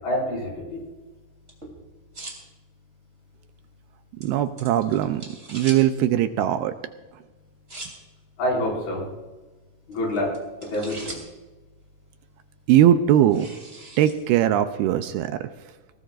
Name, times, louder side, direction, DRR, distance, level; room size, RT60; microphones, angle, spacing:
voice 1, 0.0-0.8 8.4-9.1 9.9-10.4 10.7-11.2, left 1 dB, 65° left, -3 dB, 7.2 m, -26 dB
sound 1, 0.7-14.7, right 2 dB, 15° right, 3.3 m, -46 dB
voice 2, 4.2-5.2 5.5-6.7 12.7-13.5 14.0-15.5, right 11 dB, 80° right, 9 dB, 2.5 m, -20 dB
22.5 x 19.0 x 2.5 m, 1.2 s
omnidirectional pair, 4.8 m